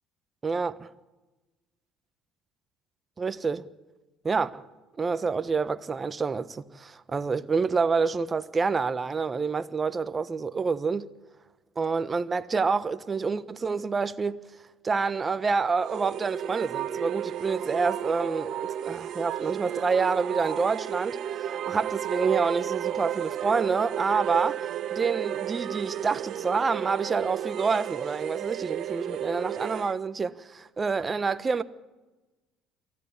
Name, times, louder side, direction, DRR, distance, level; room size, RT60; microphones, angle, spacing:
voice 1, 0.4-0.9 3.2-3.7 4.2-4.6 5.0-11.1 11.8-14.4 14.8-31.6, right 4 dB, 25° right, 1.2 m, -28 dB
sound 1, 15.8-30.0, right 10 dB, 60° right, 1.0 m, -32 dB
23.5 x 16.5 x 9.7 m
supercardioid pair, 85°, 0 cm